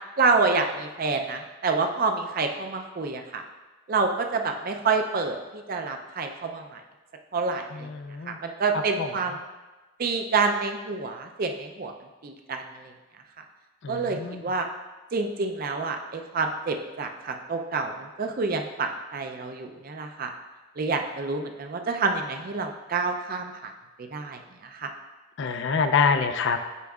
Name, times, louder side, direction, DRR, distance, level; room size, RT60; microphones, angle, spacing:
voice 1, 0.2-3.4 3.9-6.8 7.3-7.9 8.3-9.4 10.0-11.9 12.2-12.8 13.9-14.7 15.1-20.3 20.8-23.7 24.1-24.4 24.7-24.9, right 4 dB, 40° right, 5 dB, 0.4 m, -28 dB
voice 2, 7.7-8.4 8.7-9.1 13.8-14.4 25.4-26.6, left 5 dB, 55° left, 7 dB, 0.4 m, -26 dB
8.3 x 5.2 x 2.3 m, 1.2 s
head